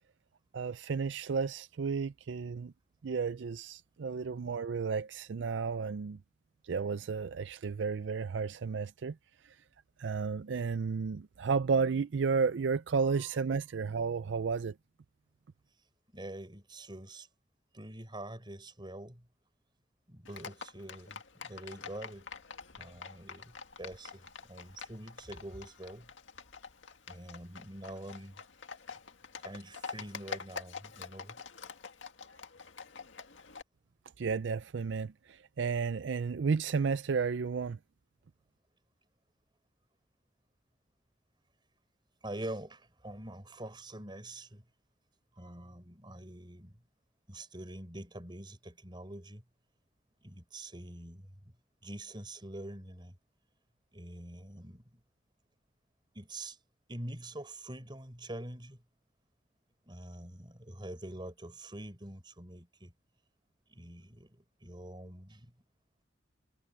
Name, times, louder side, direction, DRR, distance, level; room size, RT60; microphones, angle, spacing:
voice 1, 0.5-2.7 3.0-6.2 6.6-9.2 9.4-9.5 10.0-14.7 34.2-37.8, right 5 dB, 70° right, 0.4 m, -32 dB
voice 2, 16.1-17.3 17.7-19.3 20.1-22.3 22.8-23.5 23.8-26.1 27.1-28.3 29.4-31.4 42.2-44.6 45.3-46.8 47.3-49.4 50.2-51.5 51.8-53.2 53.9-55.0 56.1-56.6 56.9-58.8 59.8-62.9 63.7-65.5, right 1 dB, 25° right, 4.1 m, -45 dB
Livestock farm animals working animals, 20.3-33.6, left 5 dB, 85° left, 1.9 m, -47 dB
head